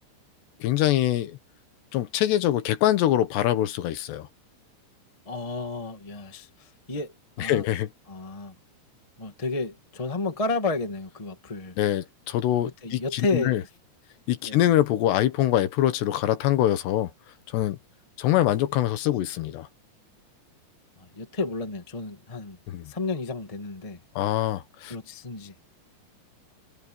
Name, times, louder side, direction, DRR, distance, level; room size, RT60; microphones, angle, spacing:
voice 1, 0.6-1.4 1.9-4.3 7.4-7.9 11.8-13.6 14.3-17.1 17.5-17.8 18.2-19.7 22.7-22.9 24.2-25.0, left 13 dB, 80° left, 3.4 m, -24 dB
voice 2, 5.2-7.1 7.4-7.6 8.1-8.5 9.2-11.7 12.6-13.7 14.4-14.6 21.0-22.6 22.9-24.0 24.9-25.5, left 3 dB, 25° left, 0.7 m, -31 dB
omnidirectional pair, 4.9 m